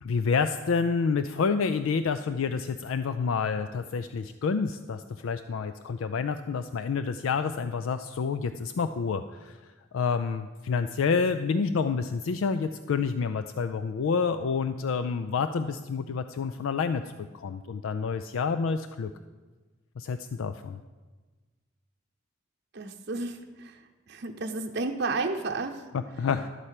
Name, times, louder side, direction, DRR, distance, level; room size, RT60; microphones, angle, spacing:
voice 1, 0.0-9.6 9.9-19.1 20.0-20.8 25.9-26.5, left 5 dB, 85° left, 10 dB, 0.4 m, -28 dB
voice 2, 22.7-23.8 24.1-25.9, right 3 dB, 55° right, 2 dB, 0.9 m, -32 dB
12.0 x 4.4 x 8.2 m, 1.3 s
head